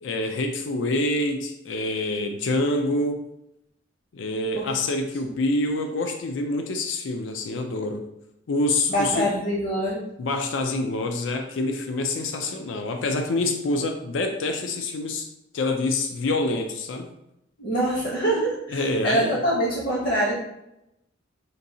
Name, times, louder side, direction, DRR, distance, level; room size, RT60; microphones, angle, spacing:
voice 1, 0.0-3.2 4.1-8.0 8.5-9.3 10.2-15.3 15.5-17.1 18.7-19.4, left 2 dB, 75° left, 5 dB, 0.4 m, -26 dB
voice 2, 8.9-10.0 17.6-20.3, right 1 dB, 50° left, -4 dB, 0.9 m, -24 dB
5.2 x 2.7 x 2.7 m, 0.84 s
head